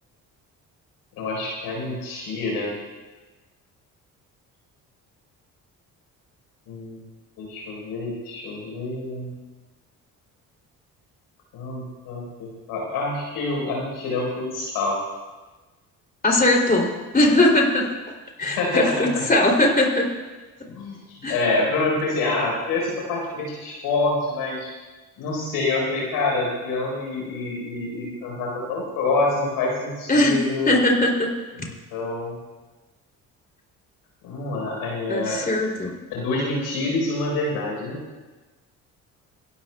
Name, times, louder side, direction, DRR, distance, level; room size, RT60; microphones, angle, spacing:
voice 1, 1.1-2.7 6.7-7.0 7.4-9.4 11.5-15.0 18.4-19.3 20.7-24.7 25.2-30.8 31.6-32.4 34.2-35.4 36.1-38.0, left 2 dB, 85° left, -2 dB, 4.4 m, -27 dB
voice 2, 16.2-17.9 18.4-20.1 21.2-21.4 30.1-30.4 30.7-31.3 35.1-36.0, left 1 dB, 25° left, 0 dB, 3.1 m, -20 dB
26.5 x 11.5 x 2.3 m, 1.2 s
supercardioid pair, 65°, 36 cm